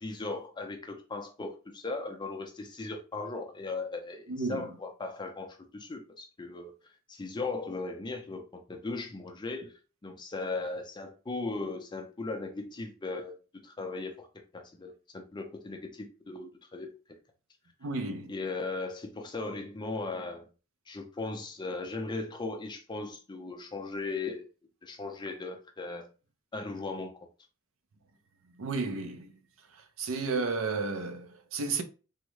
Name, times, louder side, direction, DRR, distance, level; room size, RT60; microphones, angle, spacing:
voice 1, 0.0-6.7 7.1-9.7 10.0-13.4 13.6-14.3 14.5-16.9 18.3-20.5 20.9-24.5 24.8-26.1 26.5-27.1, left 3 dB, 20° left, 0.5 m, -37 dB
voice 2, 4.3-4.7 17.8-18.3 28.6-29.3 30.0-31.8, right 3 dB, 80° right, 0.5 m, -32 dB
3.5 x 2.1 x 3.1 m
head